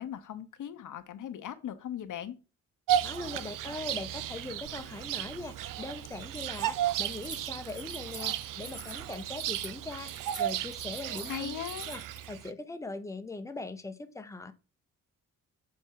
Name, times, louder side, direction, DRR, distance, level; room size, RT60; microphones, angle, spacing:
voice 1, 0.0-2.3 11.2-11.9, left 10 dB, 70° left, 1.0 m, -39 dB
Bird vocalization bird call bird song, 2.9-12.5, right 11 dB, 75° right, 0.5 m, -34 dB
voice 2, 3.0-10.1 10.4-11.5 11.9-12.0 12.3-14.5, left 2 dB, 10° left, 0.7 m, -40 dB
Keys jangling, 6.2-12.3, right 2 dB, 25° right, 1.3 m, -47 dB
7.4 x 4.5 x 4.6 m
wide cardioid pair, 145°, 32 cm